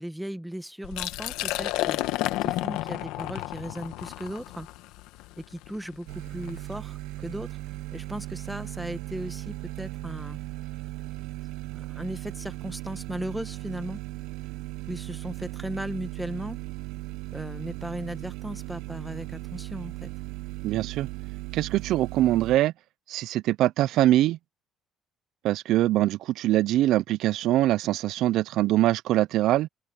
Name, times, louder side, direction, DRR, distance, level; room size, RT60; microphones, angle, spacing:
voice 1, 0.0-4.7 5.4-10.4 11.7-14.0 14.9-16.6 17.3-20.1, equal, 5° right, 1.5 m, -37 dB
Liquid, 0.8-6.6, left 16 dB, 90° left, 1.1 m, -31 dB
sound 1, 6.1-22.6, right 18 dB, 90° right, 0.8 m, -37 dB
voice 2, 20.6-21.1 21.5-22.7 23.1-24.4 25.4-29.7, right 14 dB, 70° right, 0.4 m, -23 dB
open air
cardioid pair, 110°, 0 cm